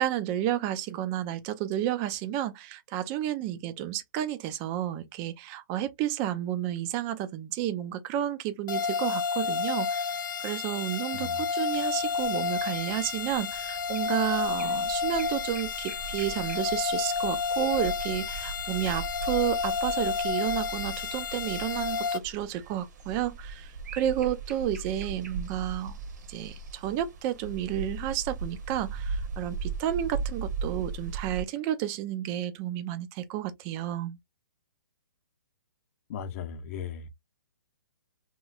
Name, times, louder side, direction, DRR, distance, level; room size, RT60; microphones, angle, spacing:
voice 1, 0.0-26.0 26.3-34.2, right 12 dB, 20° right, 0.4 m, -31 dB
sound 1, 8.7-22.2, left 5 dB, 75° left, 0.4 m, -30 dB
sound 2, 11.7-31.4, right 4 dB, 55° right, 1.1 m, -39 dB
voice 2, 36.1-37.1, left 7 dB, 40° left, 0.7 m, -37 dB
3.1 x 3.0 x 2.3 m
hypercardioid pair, 150°, 11 cm